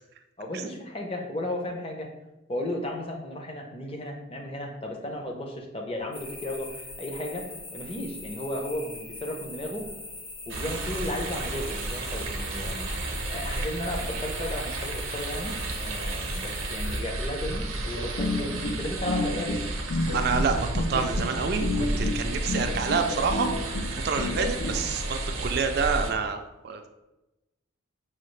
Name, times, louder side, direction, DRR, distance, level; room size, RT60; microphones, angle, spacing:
voice 1, 0.4-2.1 2.5-7.4 7.7-9.9 10.5-12.9 13.3-19.6, left 1 dB, 25° left, 1 dB, 0.6 m, -34 dB
sound 1, 6.1-17.0, left 2 dB, 45° left, 1.1 m, -42 dB
sound 2, 10.5-26.1, right 2 dB, 85° right, 0.6 m, -32 dB
sound 3, 17.9-24.8, left 2 dB, 80° left, 0.6 m, -30 dB
voice 2, 20.1-23.5 24.0-26.4 26.6-26.9, right 5 dB, 50° right, 6 dB, 0.3 m, -28 dB
5.6 x 2.3 x 3.2 m, 0.98 s
head